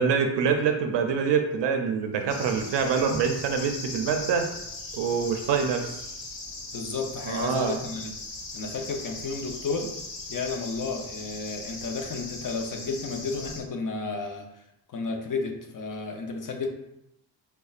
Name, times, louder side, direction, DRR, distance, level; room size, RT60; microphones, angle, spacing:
voice 1, 0.0-4.5 4.9-6.0 7.3-7.8, right 6 dB, 70° right, 5 dB, 0.5 m, -25 dB
sound 1, 2.3-13.6, left 2 dB, 75° left, 1.2 m, -39 dB
voice 2, 6.7-8.1 8.5-9.9 10.3-14.5 14.9-16.7, left 4 dB, 45° left, 3 dB, 0.7 m, -32 dB
5.1 x 2.2 x 2.4 m, 0.83 s
cardioid pair, 80°, 44 cm